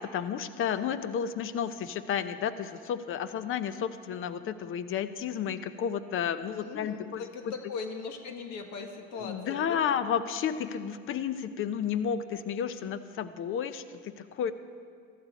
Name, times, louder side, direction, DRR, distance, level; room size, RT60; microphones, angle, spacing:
voice 1, 0.0-7.5 9.2-14.5, left 8 dB, 40° left, 13 dB, 0.8 m, -32 dB
voice 2, 6.5-9.8, left 4 dB, 60° left, 5 dB, 1.5 m, -39 dB
14.5 x 13.0 x 4.2 m, 2.1 s
supercardioid pair, 100°, 31 cm